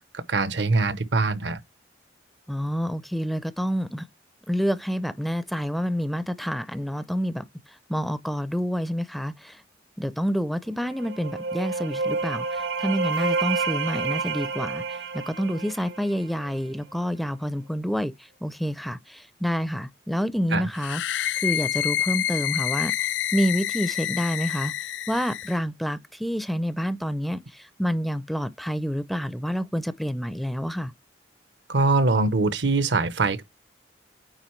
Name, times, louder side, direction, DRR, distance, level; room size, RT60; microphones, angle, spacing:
voice 1, 0.1-1.6 20.5-20.7 31.7-33.4, right 3 dB, 70° right, 0.8 m, -23 dB
voice 2, 2.5-4.1 4.5-9.6 10.0-24.7 25.1-30.9, equal, ahead, 0.4 m, -28 dB
sound 1, 10.8-16.5, right 4 dB, 90° right, 1.4 m, -29 dB
sound 2, 20.8-25.6, left 12 dB, 75° left, 0.3 m, -28 dB
9.1 x 3.6 x 3.1 m
head